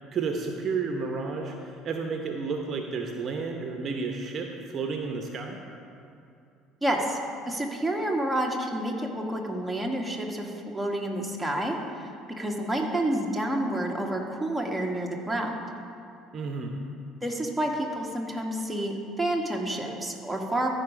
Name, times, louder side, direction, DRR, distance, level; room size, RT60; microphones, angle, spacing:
voice 1, 0.1-5.6 16.3-16.8, right 4 dB, 45° right, 3 dB, 0.9 m, -31 dB
voice 2, 6.8-7.2 7.5-15.5 17.2-20.7, right 1 dB, 5° right, -1 dB, 1.7 m, -29 dB
14.0 x 5.2 x 5.1 m, 2.6 s
hypercardioid pair, 65°, 0 cm